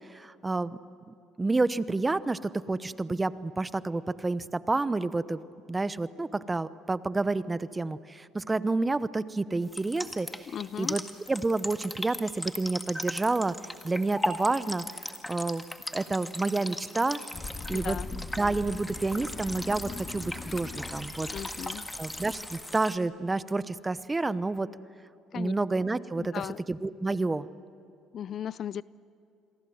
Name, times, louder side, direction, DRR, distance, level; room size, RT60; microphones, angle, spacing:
voice 1, 0.1-0.8 1.1-5.4 5.7-11.0 11.3-13.6 13.8-15.6 15.9-17.2 17.7-21.3 21.6-24.7 25.3-27.5, right 3 dB, 20° right, 15 dB, 0.9 m, -29 dB
sound 1, 9.7-23.0, left 1 dB, 5° left, 1.9 m, -38 dB
voice 2, 10.5-11.0 17.7-18.1 21.3-21.9 25.3-25.5 26.2-26.6 28.1-28.8, left 9 dB, 55° left, 19 dB, 0.5 m, -36 dB
sound 2, 17.3-22.6, left 4 dB, 35° left, 2.7 m, -41 dB
28.0 x 22.5 x 7.9 m, 2.6 s
supercardioid pair, 80°, 0 cm